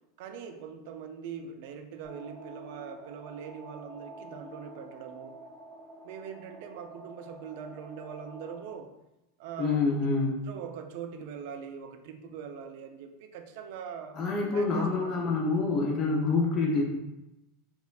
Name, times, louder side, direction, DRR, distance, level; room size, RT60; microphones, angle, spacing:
voice 1, 0.2-5.4 6.0-8.9 9.4-10.1 10.5-14.2 14.5-15.4, right 7 dB, 65° right, 6 dB, 0.3 m, -42 dB
sound 1, 2.0-8.6, right 2 dB, 10° right, 0.6 m, -48 dB
voice 2, 9.6-10.3 14.1-16.8, left 3 dB, 35° left, -1 dB, 0.5 m, -26 dB
3.0 x 2.1 x 2.4 m, 0.94 s
supercardioid pair, 130°, 0 cm